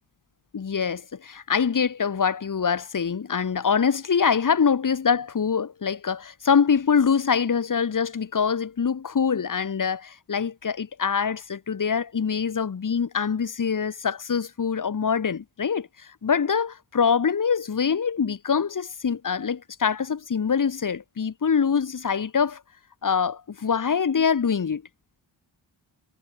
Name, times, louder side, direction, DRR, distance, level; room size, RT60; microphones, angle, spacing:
voice 1, 0.5-15.9 16.2-22.6 23.0-24.8, left 6 dB, 40° left, 3.2 m, -24 dB
wide cardioid pair, 170°, 47 cm